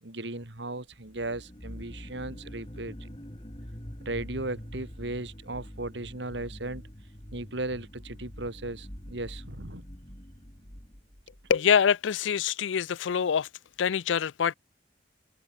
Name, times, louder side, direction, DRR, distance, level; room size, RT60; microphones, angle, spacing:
voice 1, 0.0-3.1 4.0-6.8 7.3-9.9, right 2 dB, 70° right, 2.5 m, -36 dB
sound 1, 0.9-11.6, equal, 25° left, 3.1 m, -45 dB
voice 2, 11.5-13.5 13.8-14.5, left 7 dB, 80° left, 0.4 m, -25 dB
open air
head